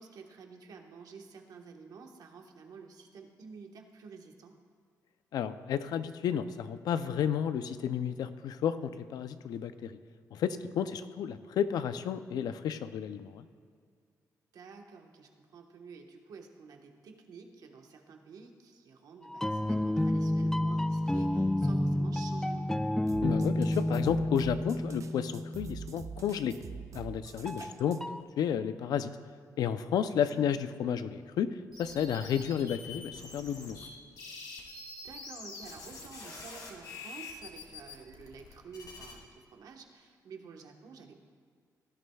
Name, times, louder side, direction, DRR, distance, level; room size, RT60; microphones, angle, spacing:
voice 1, 0.0-4.5 14.5-22.8 27.4-27.8 30.2-30.3 35.0-41.2, right 5 dB, 75° right, 3 dB, 1.2 m, -50 dB
voice 2, 5.3-10.0 10.3-13.5 23.2-26.6 26.9-28.0 28.4-29.1 29.6-31.5 31.8-33.8, left 8 dB, 80° left, 11 dB, 0.5 m, -32 dB
sound 1, 19.3-26.0 27.5-28.2, left 1 dB, 5° left, 0.3 m, -30 dB
sound 2, 23.1-28.0, right 6 dB, 50° right, 0.6 m, -45 dB
sound 3, 31.7-33.9 34.2-39.1, left 3 dB, 65° left, 2.1 m, -46 dB
18.0 x 11.5 x 2.3 m, 2.1 s
cardioid pair, 100°, 7 cm